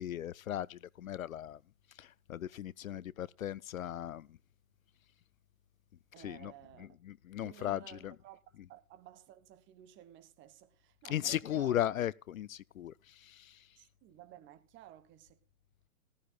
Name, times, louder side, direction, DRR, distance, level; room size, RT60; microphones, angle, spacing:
voice 1, 0.0-1.6 2.0-4.4 6.2-6.5 6.8-8.2 8.6-8.7 11.0-13.7, left 11 dB, 70° left, 0.6 m, -37 dB
voice 2, 6.1-7.0 7.4-8.4 8.7-11.8 13.8-15.5, right 12 dB, 25° right, 1.2 m, -55 dB
18.5 x 14.0 x 2.3 m
figure-of-eight pair, 105°, 43 cm